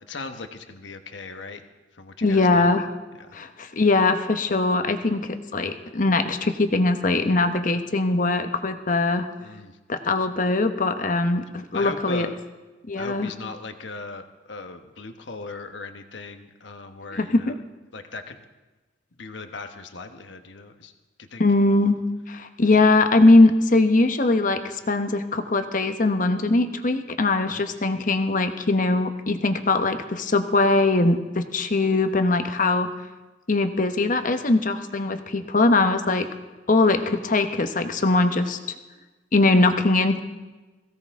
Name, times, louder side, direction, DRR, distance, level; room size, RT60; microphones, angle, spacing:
voice 1, 0.0-1.6 1.9-2.7 3.2-3.4 9.4-9.8 11.7-12.3 13.0-17.5 17.9-18.4 19.2-20.9 21.2-21.4 27.5-27.6, left 3 dB, 80° left, 7 dB, 1.2 m, -38 dB
voice 2, 2.2-2.9 3.3-9.3 9.9-12.3 12.9-13.3 17.1-17.6 21.4-22.0 22.3-32.9 33.5-36.3 36.7-38.6 39.3-40.2, left 2 dB, 45° left, 8 dB, 1.0 m, -21 dB
21.0 x 16.5 x 3.6 m, 1.2 s
head